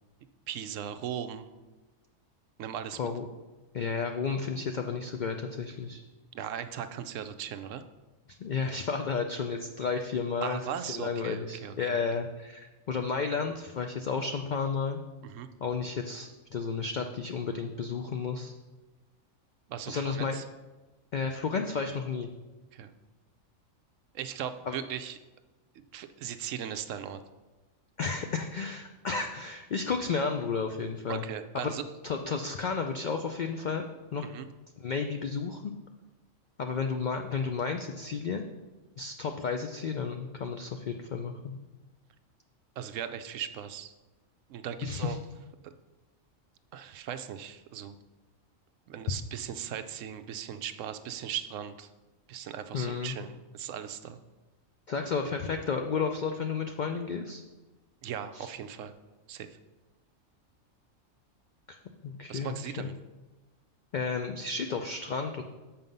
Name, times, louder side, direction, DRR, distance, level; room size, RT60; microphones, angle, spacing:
voice 1, 0.5-1.5 2.6-3.0 6.3-7.8 10.4-12.0 15.2-15.5 19.7-20.4 22.7-22.9 24.1-25.2 25.8-27.2 31.1-31.8 34.2-34.5 42.8-43.9 44.5-45.2 45.6-45.7 46.7-48.0 48.9-51.9 52.3-54.2 58.0-58.9 59.3-59.6 62.3-62.9, right 9 dB, 75° right, 10 dB, 0.9 m, -38 dB
voice 2, 3.7-6.0 8.3-15.0 15.6-18.5 19.9-20.3 21.1-22.3 24.7-24.8 28.0-31.2 31.5-31.7 32.0-34.3 34.8-35.7 36.6-38.4 39.0-41.6 44.8-45.2 52.7-53.2 54.9-57.4 58.3-58.5 61.7-61.8 62.0-62.9 63.9-65.4, left 5 dB, 80° left, 5 dB, 0.4 m, -32 dB
7.1 x 5.6 x 5.3 m, 1.2 s
omnidirectional pair, 1.4 m